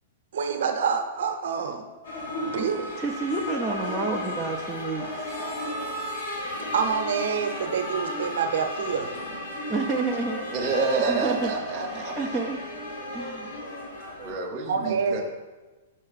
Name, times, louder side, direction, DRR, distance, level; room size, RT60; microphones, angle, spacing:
voice 1, 0.3-1.8 2.5-2.8 6.7-9.2 14.6-15.2, right 6 dB, 60° right, 5 dB, 0.7 m, -27 dB
sound 1, 2.0-14.3, left 1 dB, 65° left, 1.6 m, -34 dB
voice 2, 3.0-5.3 9.7-10.5 11.1-11.5 11.8-12.6 13.1-13.6 14.2-14.3, right 3 dB, ahead, -5 dB, 0.3 m, -29 dB
voice 3, 10.5-12.4 14.2-15.2, right 4 dB, 20° right, -1 dB, 0.7 m, -28 dB
5.3 x 5.2 x 4.0 m, 1.2 s
hypercardioid pair, 180°, 0 cm